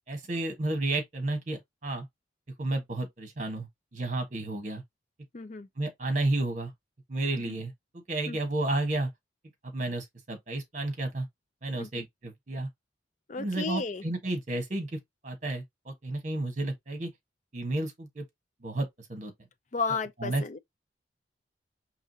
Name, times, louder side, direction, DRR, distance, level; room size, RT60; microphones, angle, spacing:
voice 1, 0.1-2.1 2.6-4.8 5.8-6.7 7.1-9.1 9.6-11.3 11.6-12.7 13.4-14.9 15.2-17.1 17.5-18.2 18.6-19.3 20.2-20.6, right 2 dB, 45° right, 1.3 m, -32 dB
voice 2, 5.3-5.7 7.5-7.6 8.3-8.4 11.7-12.0 13.3-14.0 19.7-20.6, left 4 dB, 40° left, 0.5 m, -33 dB
4.9 x 3.0 x 2.7 m
head